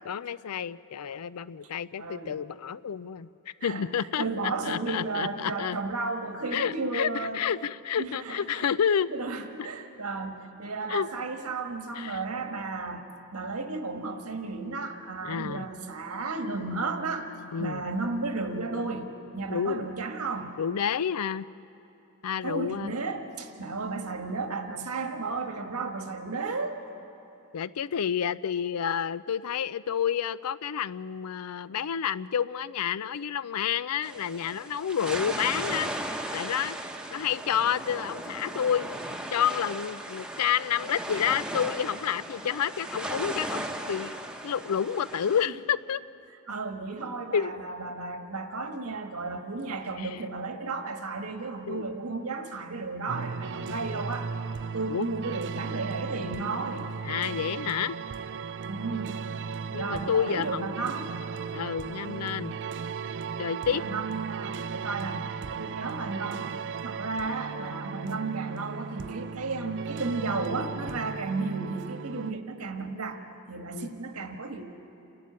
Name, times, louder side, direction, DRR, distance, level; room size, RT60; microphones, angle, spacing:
voice 1, 0.0-3.3 3.6-5.8 6.5-9.1 10.9-11.1 12.0-12.2 15.2-15.7 17.5-17.8 19.5-19.9 20.6-21.5 22.2-22.9 27.5-36.8 37.1-38.9 39.3-44.1 44.4-46.0 47.3-47.5 50.0-50.2 51.7-51.9 54.9-55.1 57.1-58.0 59.7-60.7 61.5-62.5 63.4-63.8 73.7-73.9, left 8 dB, 85° left, 18 dB, 0.4 m, -29 dB
voice 2, 2.0-2.4 3.6-3.9 4.2-7.4 8.0-8.7 9.1-13.0 13.3-17.3 17.6-20.6 22.4-26.8 45.4-45.5 46.5-54.3 54.7-56.9 58.7-59.3 59.7-61.1 63.7-66.6 66.8-73.2 73.5-74.7, right 3 dB, 80° right, 5 dB, 1.6 m, -33 dB
sound 1, 34.0-45.4, right 1 dB, 5° right, 0.9 m, -36 dB
sound 2, 53.1-72.3, right 5 dB, 55° right, 0.4 m, -36 dB
28.0 x 12.0 x 9.6 m, 2.9 s
head